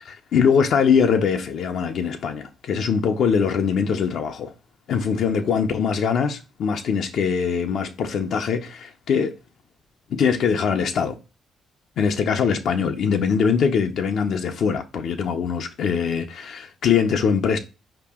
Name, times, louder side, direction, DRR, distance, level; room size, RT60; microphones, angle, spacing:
voice 1, 0.0-4.5 4.9-9.3 10.1-11.2 12.0-17.6, left 6 dB, 70° left, 0.5 m, -22 dB
4.8 x 2.9 x 3.5 m
cardioid pair, 90°, 0 cm